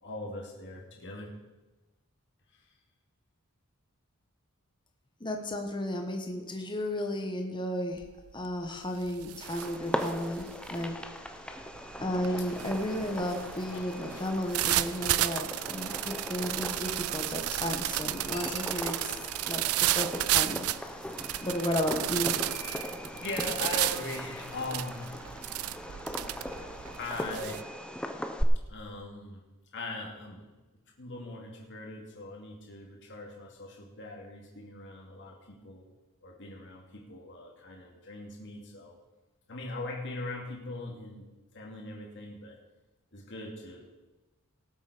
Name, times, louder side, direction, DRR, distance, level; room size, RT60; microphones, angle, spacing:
voice 1, 0.0-1.3 2.5-2.7 21.2-21.7 23.2-25.6 26.3-27.6 28.7-29.5 29.7-30.5 31.0-35.9 36.2-39.0 39.5-41.3 41.5-42.6 43.1-43.8, left 2 dB, 55° left, 0 dB, 2.4 m, -41 dB
voice 2, 5.2-8.0 8.3-10.9 12.0-19.1 19.5-21.1 21.4-22.3, left 1 dB, 20° left, 3 dB, 1.4 m, -33 dB
sound 1, 8.0-8.3 8.7-27.6, right 15 dB, 75° right, 0.4 m, -33 dB
Fireworks, 9.4-28.4, equal, 5° left, 0.7 m, -39 dB
sound 2, 12.1-17.0 18.0-18.9, left 4 dB, 75° left, 2.3 m, -52 dB
18.5 x 7.7 x 5.1 m, 1.1 s
head